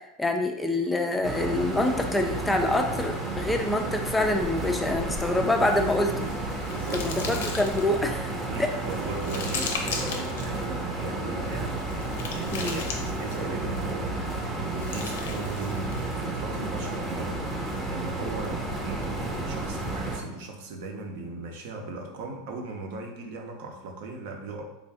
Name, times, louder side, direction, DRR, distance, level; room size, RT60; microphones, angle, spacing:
voice 1, 0.2-6.3 6.9-8.3 8.6-8.7 12.5-12.8, left 1 dB, 10° left, 4 dB, 0.3 m, -26 dB
sound 1, 1.2-20.2, right 2 dB, 15° right, 0.7 m, -32 dB
sound 2, 5.7-8.0 8.5-10.5 11.4-13.5 14.5-16.1, left 4 dB, 90° left, 0.6 m, -37 dB
voice 2, 6.7-7.4 8.5-24.6, right 3 dB, 70° right, 2 dB, 0.7 m, -38 dB
3.4 x 2.5 x 3.4 m, 0.93 s
supercardioid pair, 135°, 0 cm